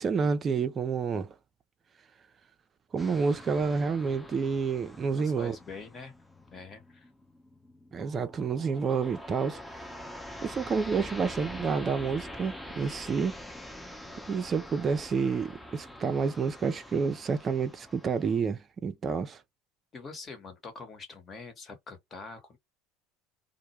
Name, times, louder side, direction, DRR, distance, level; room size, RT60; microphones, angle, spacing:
voice 1, 0.0-1.3 2.9-5.6 7.9-9.6 10.4-13.4 14.3-19.4, right 5 dB, 35° right, 0.4 m, -29 dB
sound 1, 3.0-18.4, left 1 dB, 5° left, 0.6 m, -45 dB
voice 2, 5.1-6.2 6.4-7.1 19.9-22.6, left 4 dB, 35° left, 1.1 m, -44 dB
2.1 x 2.0 x 2.9 m
hypercardioid pair, 75°, 0 cm